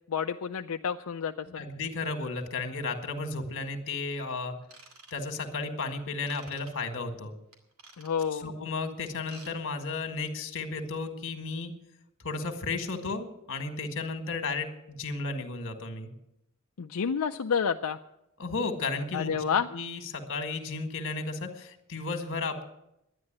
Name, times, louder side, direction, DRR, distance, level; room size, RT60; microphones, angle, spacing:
voice 1, 0.1-1.5 8.0-8.5 16.8-18.0 19.1-19.7, left 7 dB, 85° left, 5 dB, 0.5 m, -29 dB
voice 2, 1.5-4.5 5.1-7.3 8.3-11.7 12.2-16.1 18.4-19.4 19.7-22.6, left 3 dB, 60° left, 6 dB, 1.7 m, -34 dB
Ratchet pawl / Tools, 4.6-5.6 6.3-6.7 7.5-8.4 9.1-9.5 9.8-10.0 10.5-10.6, right 3 dB, 85° right, 2.4 m, -51 dB
11.0 x 9.7 x 8.7 m, 0.83 s
head